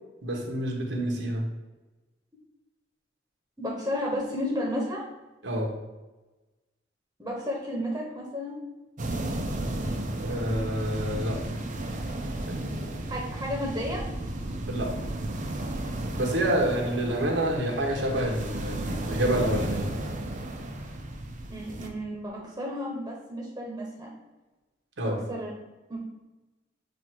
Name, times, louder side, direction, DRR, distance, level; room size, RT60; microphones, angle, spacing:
voice 1, 0.2-1.4 5.4-5.7 10.2-11.4 12.5-12.9 14.7-14.9 16.1-19.9 25.0-25.2, right 1 dB, 80° right, 1 dB, 1.3 m, -28 dB
voice 2, 3.6-5.0 7.2-8.6 13.1-14.0 21.5-24.1 25.0-25.5 25.9-26.0, equal, 15° right, -3 dB, 1.1 m, -32 dB
sound 1, 9.0-21.9, right 1 dB, 45° right, 0.7 m, -33 dB
7.6 x 2.8 x 4.5 m, 1.1 s
head